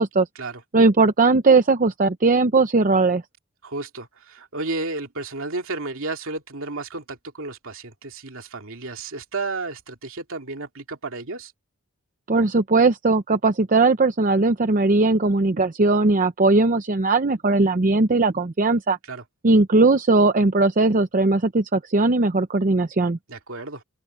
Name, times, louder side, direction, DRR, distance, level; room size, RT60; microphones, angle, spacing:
voice 1, 0.7-3.2 12.3-19.0 19.4-23.2, right 3 dB, 40° right, 0.7 m, -19 dB
voice 2, 3.6-11.5 19.1-19.2 23.3-23.8, right 3 dB, 65° right, 2.8 m, -32 dB
open air
head